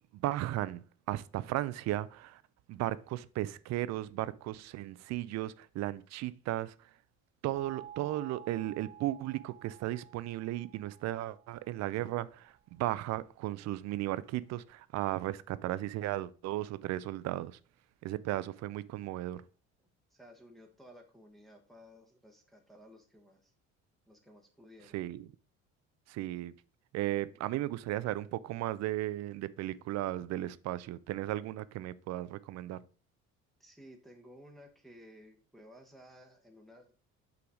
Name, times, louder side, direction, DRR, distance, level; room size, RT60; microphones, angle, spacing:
voice 1, 0.1-2.4 2.7-6.7 7.4-17.6 18.0-19.4 24.9-25.3 26.1-26.5 26.9-32.8, right 15 dB, 60° right, 0.5 m, -35 dB
sound 1, 7.6-12.3, right 9 dB, 40° right, 1.0 m, -52 dB
voice 2, 20.1-23.5 24.1-25.0 27.2-27.4 33.6-36.9, equal, ahead, 1.0 m, -56 dB
5.7 x 3.9 x 4.8 m
cardioid pair, 110°, 31 cm